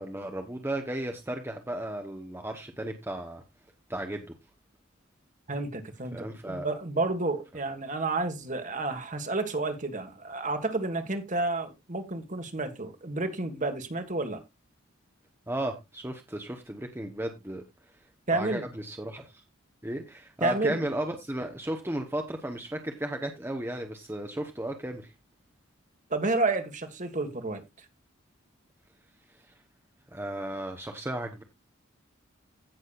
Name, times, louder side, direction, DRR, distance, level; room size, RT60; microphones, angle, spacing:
voice 1, 0.0-3.4 3.9-4.3 6.1-6.7 15.5-17.6 18.3-19.4 19.8-25.1 30.1-31.4, right 1 dB, 10° right, 1.1 m, -34 dB
voice 2, 5.5-14.4 18.3-18.7 20.4-20.8 26.1-27.6, right 2 dB, 40° right, 1.8 m, -30 dB
16.5 x 6.4 x 2.5 m
head